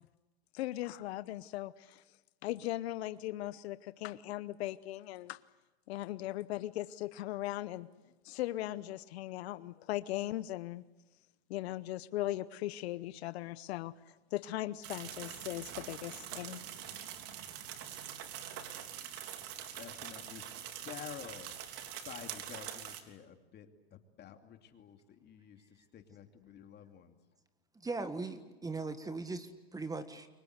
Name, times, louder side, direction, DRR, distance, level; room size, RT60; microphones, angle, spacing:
voice 1, 0.5-2.0 2.4-5.4 5.9-7.9 8.2-10.8 11.5-16.6, left 15 dB, 70° left, 15 dB, 0.9 m, -38 dB
sound 1, 14.8-23.0, right 10 dB, 50° right, 3.3 m, -44 dB
voice 2, 19.7-20.5 20.8-25.6 25.9-27.1, left 9 dB, 30° left, 6 dB, 2.9 m, -50 dB
voice 3, 27.8-30.3, right 3 dB, 10° right, 10 dB, 1.7 m, -39 dB
28.5 x 24.5 x 8.1 m, 1.1 s
supercardioid pair, 125°, 32 cm